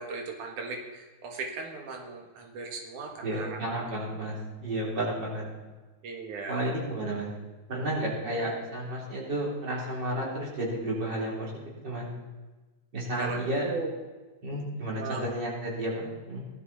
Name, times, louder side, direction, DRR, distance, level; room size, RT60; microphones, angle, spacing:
voice 1, 0.0-4.3 6.0-6.7 8.0-8.1 13.2-13.9 14.9-15.4, right 4 dB, 90° right, 2 dB, 3.3 m, -38 dB
voice 2, 3.2-5.4 6.5-7.3 7.7-11.5 11.8-12.1 12.9-13.7 14.4-16.4, right 1 dB, 35° right, -3 dB, 4.1 m, -32 dB
17.0 x 12.5 x 4.3 m, 1.2 s
omnidirectional pair, 3.4 m